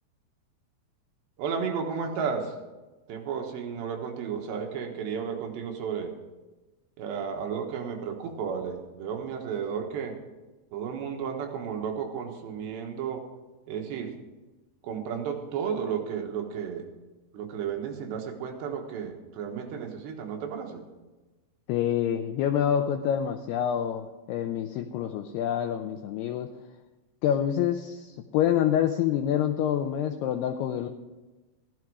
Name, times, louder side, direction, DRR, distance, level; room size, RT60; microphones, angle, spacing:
voice 1, 1.4-2.6 3.1-6.1 7.0-10.1 10.7-13.2 13.7-14.2 14.8-16.9 17.3-20.8, right 7 dB, 70° right, 3 dB, 3.4 m, -33 dB
voice 2, 21.7-26.5 27.2-30.9, left 10 dB, 90° left, 6 dB, 2.3 m, -27 dB
15.5 x 11.5 x 4.8 m, 1.1 s
omnidirectional pair, 5.4 m